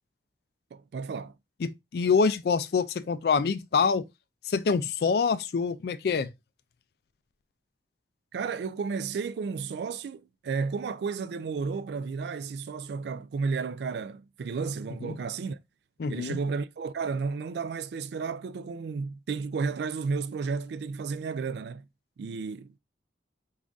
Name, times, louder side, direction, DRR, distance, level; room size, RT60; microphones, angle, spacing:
voice 1, 0.7-1.3 8.3-15.6 16.1-21.9 22.2-22.8, right 5 dB, 65° right, 0.3 m, -32 dB
voice 2, 1.9-4.0 4.5-6.3 15.0-15.2 16.0-16.4, left 5 dB, 60° left, 0.3 m, -25 dB
3.8 x 2.5 x 3.4 m
head